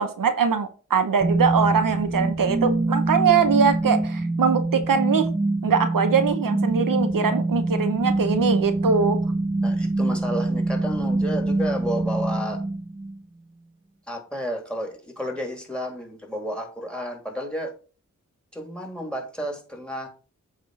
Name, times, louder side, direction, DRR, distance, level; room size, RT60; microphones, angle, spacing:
voice 1, 0.0-5.3 5.6-9.2, right 6 dB, 85° right, 9 dB, 1.0 m, -22 dB
sound 1, 1.2-13.2, right 2 dB, 15° right, 0.6 m, -25 dB
voice 2, 9.6-12.6 14.1-17.7 18.5-20.1, equal, 5° left, 4 dB, 2.8 m, -31 dB
8.1 x 3.8 x 4.8 m, 0.36 s
cardioid pair, 45°, 32 cm